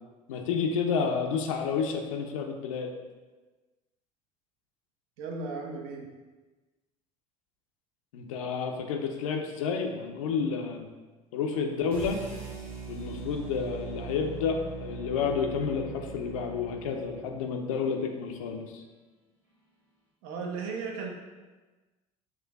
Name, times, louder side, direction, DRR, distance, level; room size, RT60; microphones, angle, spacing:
voice 1, 0.3-2.9 8.1-10.9 11.3-12.2 12.9-14.6 14.8-18.8, left 6 dB, 65° left, 3 dB, 0.5 m, -30 dB
voice 2, 5.2-6.1 20.2-21.1, right 4 dB, 55° right, 1 dB, 0.6 m, -35 dB
sound 1, 11.9-18.0, right 4 dB, 80° right, 1.2 m, -42 dB
5.9 x 2.4 x 2.3 m, 1.2 s
figure-of-eight pair, 65°, 18 cm